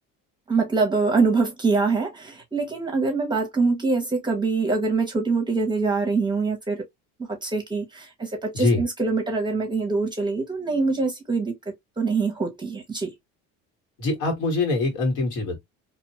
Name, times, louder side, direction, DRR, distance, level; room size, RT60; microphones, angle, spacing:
voice 1, 0.5-6.8 7.4-11.5 12.0-13.1, right 4 dB, 15° right, 0.7 m, -24 dB
voice 2, 14.0-15.6, left 3 dB, 85° left, 1.6 m, -23 dB
2.6 x 2.2 x 2.8 m
cardioid pair, 140°, 29 cm